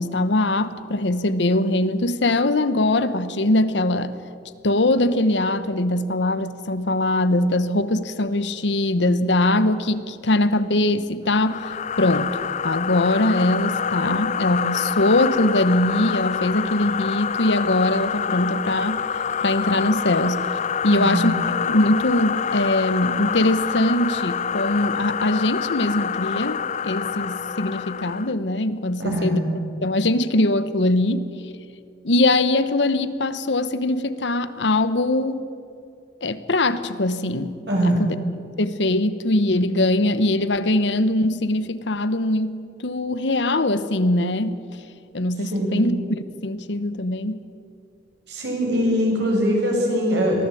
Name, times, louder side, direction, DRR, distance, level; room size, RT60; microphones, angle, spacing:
voice 1, 0.0-4.1 4.6-12.3 12.6-19.1 19.4-20.4 20.8-29.4 29.8-31.3 32.0-35.5 36.2-37.6 37.8-38.2 38.6-44.6 45.1-46.0 46.3-47.4, left 1 dB, 80° left, 1.0 m, -22 dB
sound 1, 11.3-28.3, left 7 dB, 40° left, 0.4 m, -27 dB
voice 2, 20.9-21.3 29.0-29.4 37.7-38.1 45.4-45.8 48.3-50.5, equal, 70° right, 6.7 m, -22 dB
23.0 x 15.5 x 8.5 m
head